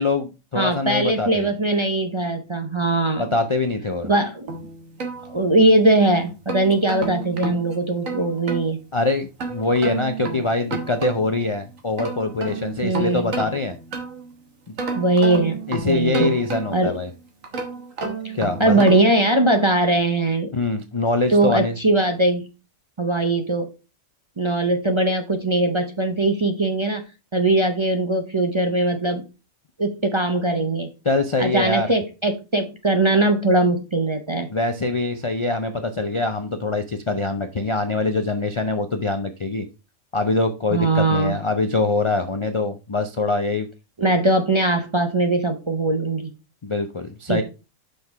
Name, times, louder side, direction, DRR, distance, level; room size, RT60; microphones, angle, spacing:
voice 1, 0.0-1.5 3.1-4.1 8.9-13.7 15.7-17.1 18.3-18.8 20.5-21.8 31.0-31.9 34.5-39.7 40.1-43.7 46.6-47.4, left 3 dB, 50° left, 7 dB, 0.3 m, -23 dB
voice 2, 0.6-3.3 4.0-4.6 5.3-8.8 12.8-13.3 15.0-16.4 16.7-16.9 18.6-20.5 21.3-22.5 23.0-23.7 24.4-27.0 27.3-29.2 29.8-30.9 31.4-34.5 40.7-41.3 44.0-46.3 47.3-47.4, right 2 dB, 30° right, 5 dB, 0.5 m, -20 dB
sound 1, 4.5-5.8 6.3-8.7 9.4-11.4 11.8-14.3 14.8-16.9 17.4-19.2, right 4 dB, 70° right, 1.8 m, -31 dB
5.7 x 5.1 x 4.6 m, 0.30 s
omnidirectional pair, 1.5 m